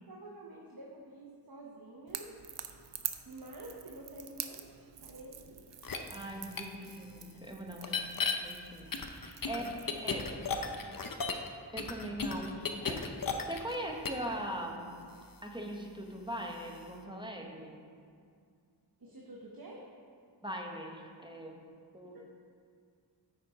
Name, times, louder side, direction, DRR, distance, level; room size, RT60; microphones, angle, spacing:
voice 1, 0.1-2.3 3.3-4.6 5.0-5.6 9.5-9.7 10.1-10.4 10.6-11.0 12.8-12.9 19.0-19.8 22.1-22.2, right 2 dB, 55° right, -3 dB, 0.9 m, -49 dB
Crackle / Crack, 2.1-10.2, right 8 dB, 80° right, 0.5 m, -46 dB
sound 1, 5.8-6.0 6.6-6.7 7.8-8.3 8.9-11.5 11.8-13.8 14.0-14.3, left 5 dB, 50° left, 0.6 m, -34 dB
voice 2, 6.1-10.2 11.7-13.0 13.5-15.0 15.4-17.8 20.4-21.6 21.9-22.2, right 1 dB, 10° right, 1 dB, 0.9 m, -41 dB
9.4 x 4.3 x 4.8 m, 2.2 s
wide cardioid pair, 50°, 43 cm